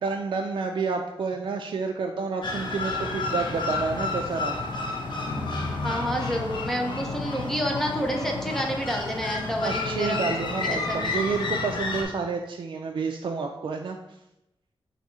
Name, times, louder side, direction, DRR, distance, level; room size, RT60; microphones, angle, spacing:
voice 1, 0.0-4.6 9.6-14.0, right 4 dB, 60° right, 2 dB, 0.3 m, -29 dB
sound 1, 2.4-12.0, left 3 dB, 60° left, 0.8 m, -31 dB
sound 2, 5.3-8.5, left 1 dB, 40° left, 1.1 m, -36 dB
voice 2, 5.8-10.2 10.6-11.2, equal, 5° left, 1 dB, 0.6 m, -29 dB
4.0 x 2.7 x 4.7 m, 0.89 s
wide cardioid pair, 145°, 9 cm